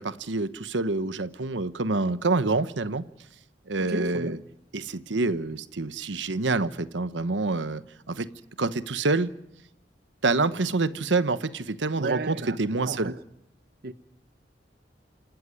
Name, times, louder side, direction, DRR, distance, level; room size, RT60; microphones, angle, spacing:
voice 1, 0.0-3.0 3.7-4.4 4.7-7.8 8.1-8.3 8.6-9.3 10.2-13.1, right 3 dB, 85° right, 1.1 m, -27 dB
voice 2, 3.8-4.4 12.0-12.6 12.9-13.2 13.8-13.9, right 2 dB, 60° right, 1.0 m, -33 dB
28.5 x 13.0 x 9.8 m
head